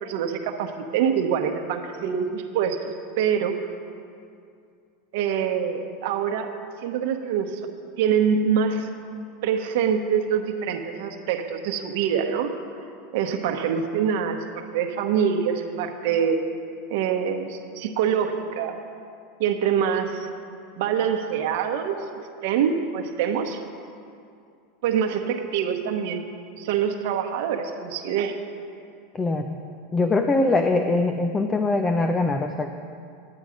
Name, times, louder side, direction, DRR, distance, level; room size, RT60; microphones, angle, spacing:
voice 1, 0.0-3.6 5.1-6.5 6.8-7.6 8.0-8.9 9.4-12.5 13.1-16.4 16.9-18.8 19.4-20.3 20.8-22.0 22.4-23.6 24.8-26.3 26.6-28.4, right 7 dB, 70° right, 5 dB, 1.0 m, -25 dB
voice 2, 29.1-29.6 29.9-32.7, left 2 dB, 15° left, 6 dB, 0.5 m, -22 dB
11.0 x 8.9 x 5.1 m, 2.4 s
supercardioid pair, 135°, 0 cm